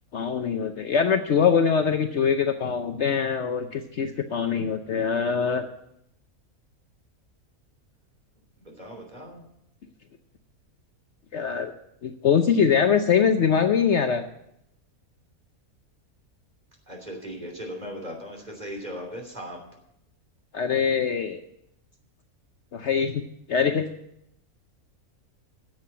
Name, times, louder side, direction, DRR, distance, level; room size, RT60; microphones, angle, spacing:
voice 1, 0.1-5.7 11.3-11.7 12.0-14.2 20.5-21.4 22.7-23.2 23.5-23.9, left 7 dB, 60° left, 6 dB, 0.9 m, -23 dB
voice 2, 8.6-9.4 16.9-19.6, equal, 30° right, 0 dB, 3.2 m, -38 dB
10.5 x 7.6 x 8.4 m, 0.77 s
omnidirectional pair, 1.5 m